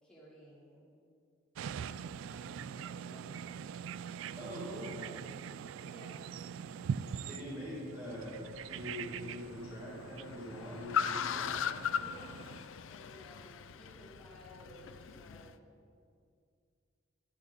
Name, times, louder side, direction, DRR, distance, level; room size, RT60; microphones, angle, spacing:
voice 1, 0.0-0.9 1.7-3.5 5.9-6.3 12.0-12.5 12.9-15.6, equal, 5° left, -9 dB, 3.5 m, -56 dB
sound 1, 1.6-12.7, right 7 dB, 80° right, 0.3 m, -43 dB
voice 2, 4.4-5.1 7.2-8.4 8.7-11.5, left 1 dB, 15° right, -10 dB, 2.1 m, -43 dB
Car, 8.1-15.5, left 7 dB, 75° left, 0.4 m, -39 dB
12.5 x 11.0 x 4.1 m, 2.3 s
head